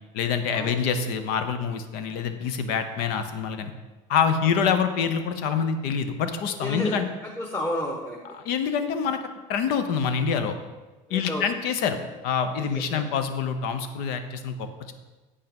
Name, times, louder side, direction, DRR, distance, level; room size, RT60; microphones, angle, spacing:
voice 1, 0.1-3.7 4.1-7.1 8.4-9.2 9.5-10.6 11.1-12.0 12.2-14.9, left 6 dB, 75° left, 9 dB, 0.9 m, -26 dB
voice 2, 6.6-8.2 11.1-11.4 12.6-13.1, left 1 dB, 15° left, -2 dB, 1.1 m, -32 dB
8.2 x 5.6 x 5.3 m, 1.2 s
supercardioid pair, 110°, 16 cm